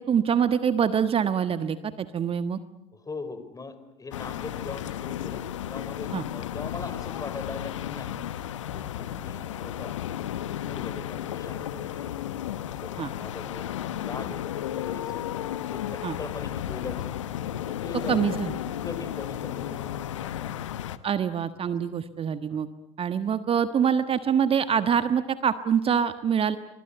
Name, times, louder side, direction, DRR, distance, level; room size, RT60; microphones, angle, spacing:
voice 1, 0.0-2.6 6.1-6.2 13.0-13.1 16.0-16.2 18.1-18.6 21.0-22.7 23.0-26.6, right 7 dB, 35° right, 11 dB, 1.4 m, -25 dB
voice 2, 3.0-5.4 5.7-8.1 8.7-9.9 10.6-12.2 12.8-15.2 15.7-17.2 17.7-18.4 18.8-20.6 21.6-21.8 22.5-22.6, left 4 dB, 25° left, 11 dB, 4.8 m, -40 dB
sound 1, 4.1-21.0, left 11 dB, 80° left, 1.1 m, -33 dB
29.0 x 24.5 x 8.0 m, 0.83 s
hypercardioid pair, 65°, 16 cm